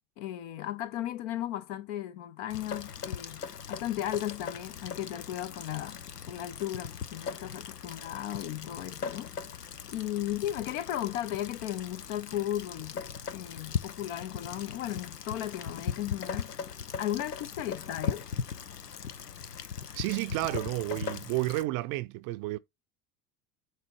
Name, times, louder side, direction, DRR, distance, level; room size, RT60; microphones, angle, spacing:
voice 1, 0.2-6.0 6.3-9.4 9.9-13.0 13.3-16.5 17.0-18.3, left 12 dB, 50° left, 0.9 m, -35 dB
Rain, 2.5-21.7, left 7 dB, 85° left, 0.6 m, -39 dB
voice 2, 19.9-22.6, right 19 dB, 45° right, 0.6 m, -31 dB
7.7 x 2.8 x 4.6 m
figure-of-eight pair, 70°, 47 cm